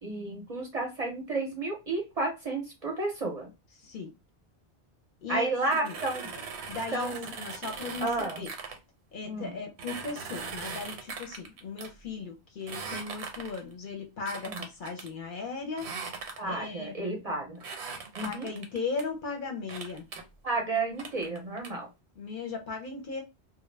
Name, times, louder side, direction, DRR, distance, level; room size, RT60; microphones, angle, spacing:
voice 1, 0.0-3.5 5.3-6.3 6.9-7.3 8.0-8.4 9.2-9.5 14.5-14.6 16.4-17.6 18.1-18.5 20.4-21.9, right 2 dB, 45° right, 0 dB, 0.6 m, -32 dB
voice 2, 3.8-4.1 5.2-6.0 6.3-8.5 9.1-15.9 16.4-16.9 18.2-20.1 22.2-23.2, left 4 dB, 60° left, 3 dB, 0.7 m, -37 dB
sound 1, 5.6-8.8 9.8-11.9 12.6-13.7 14.3-15.1 15.8-16.6 17.6-19.0 19.7-20.2 20.7-21.7, right 5 dB, 85° right, 0.9 m, -40 dB
2.2 x 2.0 x 3.2 m, 0.25 s
omnidirectional pair, 1.1 m